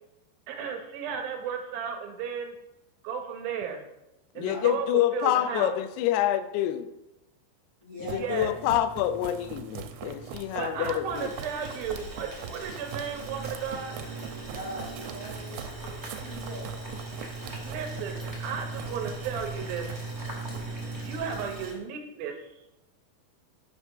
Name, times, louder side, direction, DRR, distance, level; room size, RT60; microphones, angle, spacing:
voice 1, 0.5-2.5 3.0-3.8 4.4-5.7 8.1-8.5 10.6-14.0 17.6-19.9 21.0-22.5, right 7 dB, 70° right, 4 dB, 2.5 m, -34 dB
voice 2, 4.4-6.9 8.1-11.3, left 13 dB, 80° left, 11 dB, 2.6 m, -27 dB
voice 3, 7.8-8.7 14.5-16.7, equal, 60° left, -5 dB, 0.9 m, -41 dB
sound 1, 8.0-21.7, right 4 dB, 85° right, 2.8 m, -39 dB
Boiling, 11.1-21.7, right 1 dB, 15° right, 1.0 m, -44 dB
8.3 x 5.0 x 5.8 m, 0.94 s
omnidirectional pair, 4.8 m